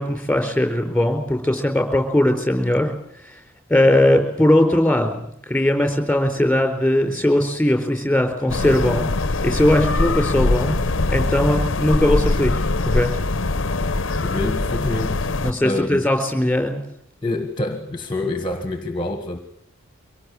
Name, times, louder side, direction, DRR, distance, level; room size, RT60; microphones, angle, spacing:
voice 1, 0.0-2.9 3.7-9.1 9.4-10.7 11.1-13.1 15.4-16.8, left 1 dB, 5° left, 5 dB, 4.2 m, -19 dB
sound 1, 8.5-15.5, left 2 dB, 60° left, 0.9 m, -22 dB
voice 2, 14.2-15.3 15.6-16.0 17.2-19.4, left 2 dB, 20° left, 7 dB, 1.6 m, -26 dB
24.5 x 18.0 x 8.5 m, 0.74 s
head